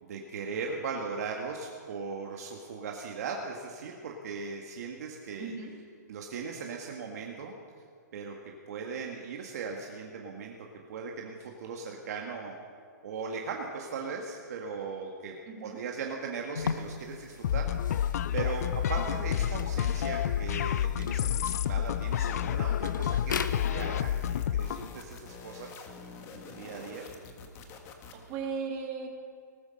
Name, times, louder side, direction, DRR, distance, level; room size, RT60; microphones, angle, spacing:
voice 1, 0.0-5.5 6.1-7.5 8.1-12.6 13.0-15.4 15.6-24.1 24.5-25.9 26.3-27.0, right 5 dB, 55° right, 1 dB, 1.7 m, -38 dB
voice 2, 5.4-5.7 15.5-15.8 19.0-19.2 27.0-27.1 28.1-29.1, right 5 dB, 30° right, 0 dB, 2.9 m, -37 dB
sound 1, 16.5-24.1, left 6 dB, 85° left, 0.9 m, -40 dB
sound 2, 17.4-24.9, left 10 dB, 55° left, 0.5 m, -29 dB
sound 3, 23.3-28.3, left 4 dB, 25° left, 1.6 m, -47 dB
19.0 x 9.8 x 6.5 m, 2.2 s
hypercardioid pair, 145°, 10 cm